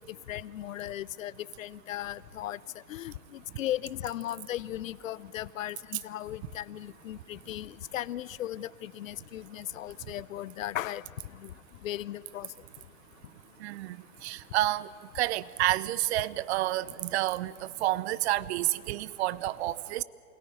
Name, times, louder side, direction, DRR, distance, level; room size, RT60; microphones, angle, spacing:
voice 1, 0.3-1.3 1.6-2.6 2.9-3.1 3.6-11.0 11.4-11.5 11.8-12.5, left 13 dB, 65° left, 20 dB, 0.7 m, -36 dB
voice 2, 13.6-14.9 15.1-20.0, right 16 dB, 50° right, 19 dB, 0.8 m, -29 dB
27.5 x 18.0 x 9.7 m, 2.4 s
hypercardioid pair, 115°, 42 cm